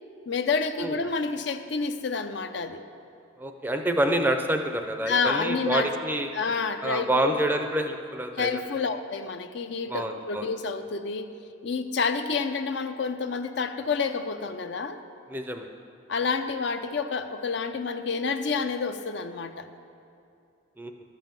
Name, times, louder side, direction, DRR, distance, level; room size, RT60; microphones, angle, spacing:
voice 1, 0.3-2.8 5.0-5.9 6.3-7.4 8.4-11.3 11.6-15.0 16.1-19.7, left 4 dB, 60° left, 9 dB, 0.5 m, -29 dB
voice 2, 3.4-6.3 6.8-8.6 9.9-10.5 15.3-15.7 20.8-20.9, right 1 dB, 10° right, 5 dB, 0.5 m, -27 dB
12.5 x 5.5 x 7.4 m, 2.6 s
head